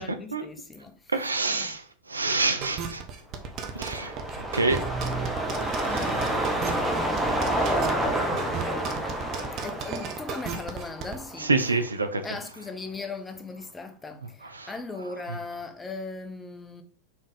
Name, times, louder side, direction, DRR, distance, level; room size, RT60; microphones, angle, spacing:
voice 1, 0.0-1.0 1.5-1.8 5.9-6.3 9.6-11.5 12.2-16.8, left 3 dB, 15° left, 0.7 m, -38 dB
voice 2, 1.1-3.0 3.7-4.1 4.5-4.8 5.8-6.1 7.6-7.8 11.4-12.2 14.4-14.7, right 3 dB, 85° right, 0.5 m, -27 dB
sound 1, 2.6-11.2, right 6 dB, 40° right, 0.8 m, -35 dB
sound 2, 3.4-11.9 12.2-12.3, right 1 dB, 5° right, 1.1 m, -29 dB
4.3 x 3.5 x 3.4 m
figure-of-eight pair, 90°, 0 cm